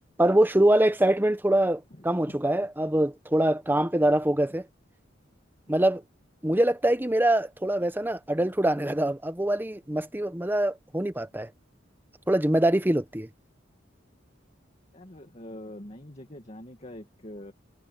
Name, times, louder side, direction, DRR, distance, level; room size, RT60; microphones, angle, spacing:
voice 1, 0.2-4.7 5.7-6.0 6.4-11.5 12.3-13.3, right 1 dB, 10° right, 1.0 m, -24 dB
voice 2, 1.9-2.4 14.9-17.5, left 1 dB, 35° left, 2.2 m, -44 dB
head